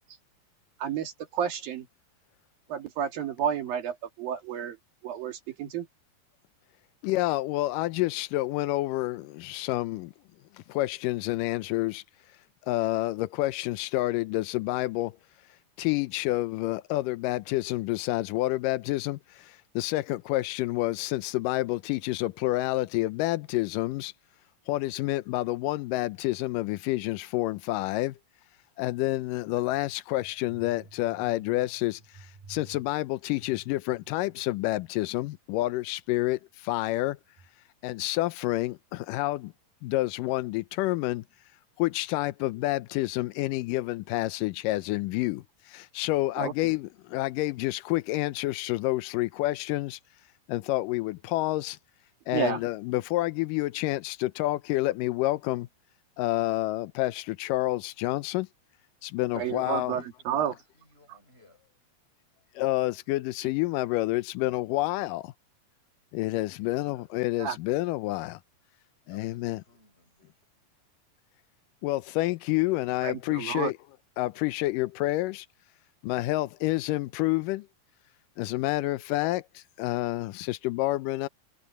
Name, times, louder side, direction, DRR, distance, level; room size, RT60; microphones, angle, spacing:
voice 1, 0.8-1.9 2.7-4.8 5.0-5.9 46.4-46.5 52.3-52.6 59.4-60.5 67.4-67.6 73.0-73.7, right 9 dB, 65° right, 3.9 m, -31 dB
voice 2, 7.0-10.1 10.7-12.0 12.6-15.2 15.8-24.1 24.7-28.2 28.8-37.2 37.8-39.5 39.8-41.2 41.8-50.0 50.5-51.8 52.3-55.7 56.2-58.5 59.0-60.0 62.6-65.3 66.1-68.4 69.1-69.6 71.8-73.8 74.2-75.5 76.0-77.7 78.4-81.3, left 18 dB, 80° left, 1.9 m, -29 dB
voice 3, 59.3-61.6 69.1-70.4, left 2 dB, 15° left, 6.7 m, -57 dB
omnidirectional pair, 4.5 m